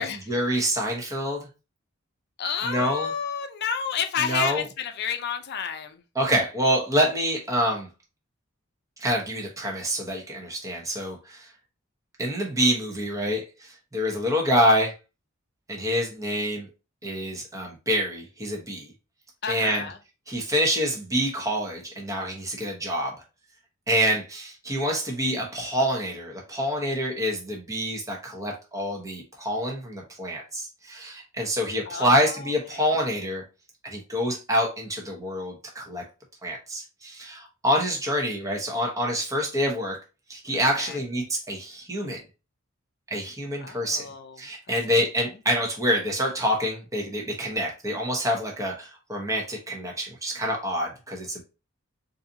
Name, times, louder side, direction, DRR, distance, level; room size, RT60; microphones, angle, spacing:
voice 1, 0.0-1.5 2.6-3.1 4.2-4.7 6.1-7.9 9.0-11.5 12.2-14.9 15.7-16.7 17.0-18.9 19.5-19.9 20.3-23.2 23.9-33.4 33.8-36.0 36.4-40.0 40.3-42.2 43.1-44.0 44.4-51.4, equal, 15° right, 1.0 m, -26 dB
voice 2, 2.4-6.0 19.4-20.0 31.9-32.9 40.8-41.0 43.6-44.4 44.7-44.8, left 7 dB, 55° left, 0.5 m, -30 dB
4.0 x 2.7 x 2.7 m
head